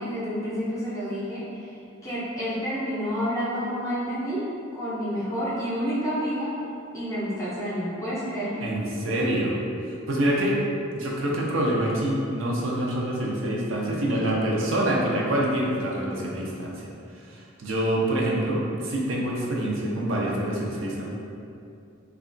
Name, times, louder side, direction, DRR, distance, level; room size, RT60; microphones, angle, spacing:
voice 1, 0.0-6.5 6.9-8.6 10.3-10.4, equal, 15° left, -9 dB, 0.5 m, -29 dB
voice 2, 8.6-9.6 9.9-10.6 10.9-16.9 17.1-21.0, right 1 dB, 70° right, -3 dB, 0.5 m, -26 dB
2.8 x 2.3 x 2.5 m, 2.5 s
head